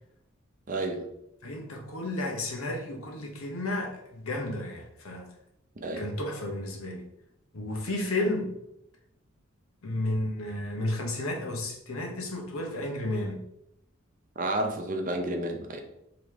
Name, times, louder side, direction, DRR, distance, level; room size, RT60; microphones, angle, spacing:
voice 1, 0.7-1.1 5.8-6.0 14.4-15.8, right 1 dB, 40° right, 4 dB, 0.7 m, -31 dB
voice 2, 1.4-5.3 6.0-7.1 7.5-8.5 9.8-13.4, left 1 dB, 90° left, 2 dB, 1.0 m, -32 dB
5.0 x 3.0 x 3.5 m, 0.81 s
head